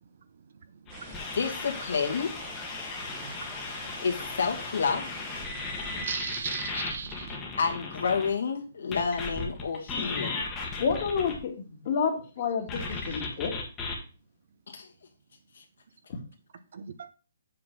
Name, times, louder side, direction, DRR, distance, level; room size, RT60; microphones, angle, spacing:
sound 1, 0.9-8.3 8.9-11.4 12.7-13.9, left 3 dB, 10° left, 1.2 m, -36 dB
sound 2, 0.9-6.0, right 4 dB, 20° right, 1.0 m, -47 dB
voice 1, 1.3-2.3 4.0-5.1 7.6-10.4 14.7-14.9 15.6-15.7, left 5 dB, 70° left, 1.8 m, -29 dB
voice 2, 6.0-7.4 16.7-17.1, right 6 dB, 45° right, 0.7 m, -36 dB
voice 3, 10.8-13.5, left 6 dB, 30° left, 1.6 m, -29 dB
7.6 x 4.0 x 5.7 m
hypercardioid pair, 180°, 0 cm